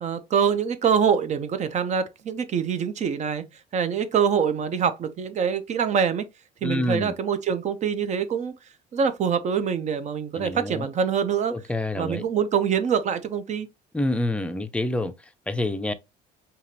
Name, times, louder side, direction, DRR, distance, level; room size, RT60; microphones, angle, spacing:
voice 1, 0.0-3.4 3.7-6.2 6.6-8.5 8.9-11.5 12.0-13.7, right 7 dB, 40° right, 0.6 m, -24 dB
voice 2, 6.6-7.1 10.3-10.9 11.5-12.2 13.9-15.1 15.5-15.9, left 1 dB, 5° left, 0.5 m, -27 dB
5.0 x 2.9 x 2.8 m
cardioid pair, 115°, 18 cm